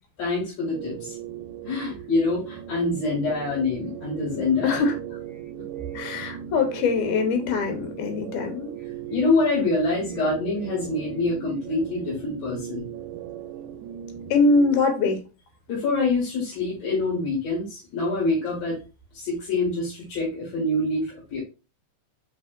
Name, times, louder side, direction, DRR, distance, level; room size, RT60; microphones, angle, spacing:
voice 1, 0.2-1.2 1.6-4.8 9.1-12.9 15.7-18.8 19.1-21.4, left 3 dB, 60° left, 2.9 m, -25 dB
sound 1, 0.7-14.8, right 10 dB, 85° right, 2.1 m, -38 dB
voice 2, 4.6-5.0 5.9-8.8 14.3-15.2, left 4 dB, 75° left, 2.3 m, -23 dB
6.1 x 3.6 x 2.4 m
omnidirectional pair, 3.6 m